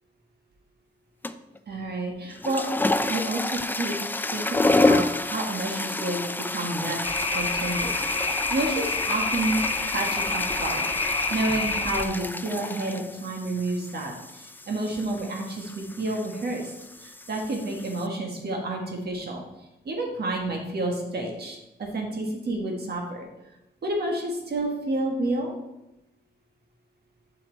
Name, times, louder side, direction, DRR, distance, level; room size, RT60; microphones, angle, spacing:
sound 1, 1.2-1.6 2.2-18.1, left 2 dB, 10° left, 0.3 m, -29 dB
voice 1, 1.7-2.7 3.1-4.0 4.3-7.0 7.3-9.6 9.8-16.7 17.0-19.4 19.8-23.3 23.8-25.5, right 2 dB, 60° right, 0 dB, 1.6 m, -30 dB
sound 2, 7.0-12.0, left 3 dB, 30° left, 0.7 m, -28 dB
7.9 x 5.9 x 4.0 m, 0.92 s
wide cardioid pair, 135°, 19 cm